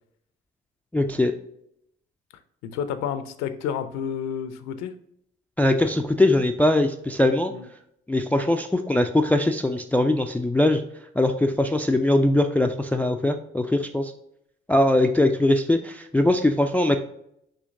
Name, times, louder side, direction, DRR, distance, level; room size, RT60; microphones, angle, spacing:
voice 1, 0.9-1.3 5.6-7.5 8.1-10.8 11.2-14.1 14.7-17.0, left 1 dB, 5° left, 7 dB, 0.3 m, -21 dB
voice 2, 2.6-4.9 7.5-7.7, left 8 dB, 60° left, 11 dB, 0.6 m, -30 dB
6.4 x 2.8 x 2.5 m, 0.74 s
figure-of-eight pair, 45°, 30 cm